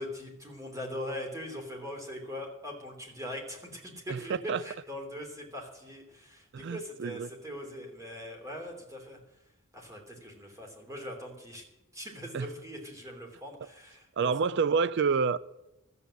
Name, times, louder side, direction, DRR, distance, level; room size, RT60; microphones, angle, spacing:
voice 1, 0.0-9.2 9.7-11.6 11.9-14.3, left 1 dB, 15° right, 3.0 m, -41 dB
voice 2, 6.5-7.3 12.3-12.5 13.6-13.7 14.2-15.4, right 5 dB, 55° right, 0.4 m, -28 dB
13.5 x 8.2 x 9.8 m
head